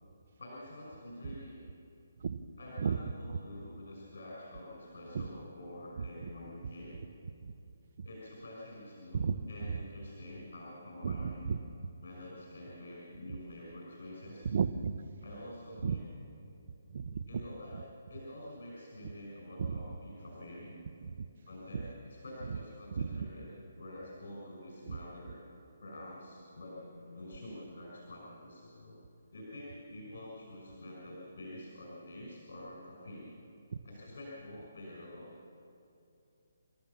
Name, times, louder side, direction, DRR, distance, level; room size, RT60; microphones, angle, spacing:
voice 1, 0.4-1.6 2.6-6.9 8.0-9.2 9.5-11.5 12.0-14.5 15.2-16.0 17.3-17.8 18.1-20.8 21.5-23.5 23.8-25.4 25.8-29.0 29.3-33.3 33.8-35.3, left 1 dB, 70° left, -4 dB, 6.1 m, -47 dB
voice 2, 11.0-11.9 14.4-15.0 15.8-16.0 16.9-17.2 17.7-17.8 19.6-19.8 21.0-21.3 21.7-21.8 22.5-22.6 22.9-23.3 24.9-25.0 33.7-33.8, right 6 dB, 55° right, 13 dB, 1.0 m, -34 dB
30.0 x 14.0 x 7.0 m, 2.6 s
hypercardioid pair, 155°, 0 cm